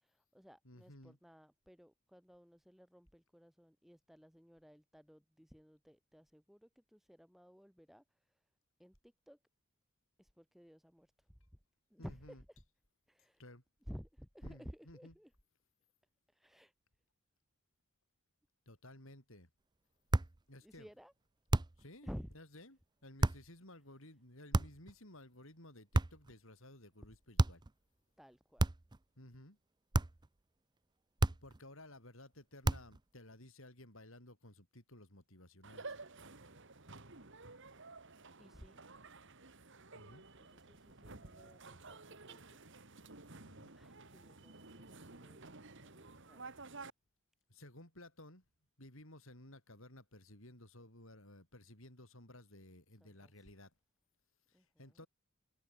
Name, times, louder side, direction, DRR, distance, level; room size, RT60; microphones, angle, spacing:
voice 1, 0.0-8.4 8.8-9.4 10.2-11.4 11.9-12.6 13.1-13.4 13.9-15.3 16.3-16.7 20.6-21.1 22.0-22.3 28.2-28.7 38.4-38.8 39.9-42.6 43.7-46.6 53.0-53.5 54.5-55.0, equal, ahead, 6.2 m, -55 dB
voice 2, 0.6-1.2 12.0-12.4 13.4-13.6 14.4-15.1 18.7-19.5 20.5-20.9 21.8-27.6 29.2-29.6 31.3-36.0 39.9-40.3 43.4-43.7 47.5-48.4 48.8-53.7 54.5-55.1, left 1 dB, 65° left, 7.7 m, -56 dB
sound 1, 20.1-20.4 21.5-21.9 23.2-23.5 24.5-24.9 25.9-26.3 27.4-27.7 28.6-29.0 29.9-30.3 31.2-31.6 32.6-33.0, right 2 dB, 20° right, 0.6 m, -32 dB
sound 2, 35.6-46.9, right 3 dB, 60° right, 3.0 m, -53 dB
head